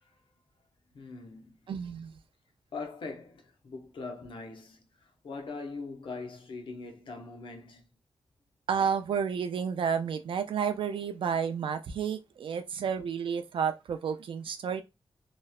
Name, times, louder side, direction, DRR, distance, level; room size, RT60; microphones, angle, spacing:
voice 1, 0.9-1.6 2.7-4.8 5.2-7.9, left 3 dB, 75° left, 0.7 m, -41 dB
voice 2, 1.7-2.1 8.7-14.8, right 7 dB, 80° right, 0.3 m, -31 dB
3.0 x 2.1 x 2.2 m
wide cardioid pair, 110°, 9 cm